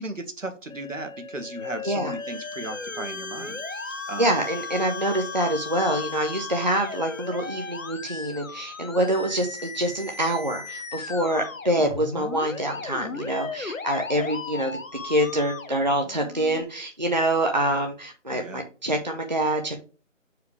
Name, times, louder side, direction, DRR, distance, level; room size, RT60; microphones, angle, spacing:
voice 1, 0.0-4.4 18.3-18.6, right 2 dB, 75° right, 6 dB, 1.6 m, -36 dB
Musical instrument, 0.7-16.6, left 5 dB, 80° left, 1.0 m, -37 dB
Bowed string instrument, 2.2-8.0, left 2 dB, 55° left, 0.8 m, -40 dB
voice 2, 4.2-14.8 15.0-19.8, right 1 dB, 35° right, 2 dB, 0.7 m, -26 dB
6.6 x 4.7 x 3.3 m, 0.35 s
figure-of-eight pair, 175°, 39 cm